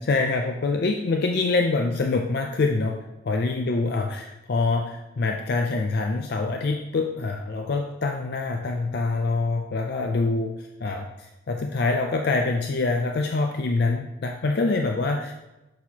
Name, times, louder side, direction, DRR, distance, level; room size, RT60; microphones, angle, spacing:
voice 1, 0.0-3.0 3.2-15.3, left 3 dB, 55° left, 3 dB, 0.4 m, -25 dB
6.3 x 6.0 x 2.8 m, 1.0 s
head